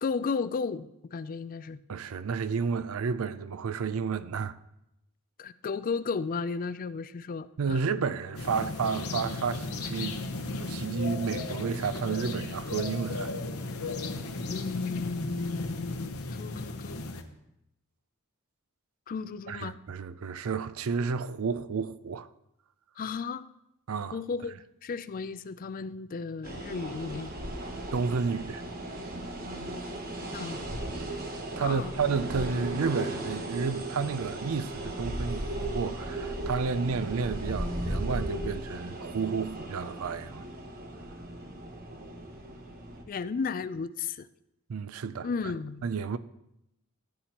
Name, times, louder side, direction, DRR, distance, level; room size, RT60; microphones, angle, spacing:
voice 1, 0.0-1.8 5.4-7.8 14.5-17.0 19.1-19.8 23.0-23.5 24.1-27.3 30.3-30.6 31.6-31.9 43.1-44.3 45.2-45.9, left 5 dB, 40° left, 0.3 m, -34 dB
voice 2, 1.9-4.6 7.6-10.2 10.5-13.3 19.5-22.3 23.9-24.2 27.9-28.6 31.6-40.4 44.7-45.3 45.8-46.2, right 5 dB, 70° right, 0.4 m, -31 dB
sound 1, 8.3-17.2, left 3 dB, 80° left, 0.9 m, -35 dB
sound 2, 26.4-43.0, right 1 dB, 45° right, 1.1 m, -36 dB
14.5 x 8.3 x 2.9 m
head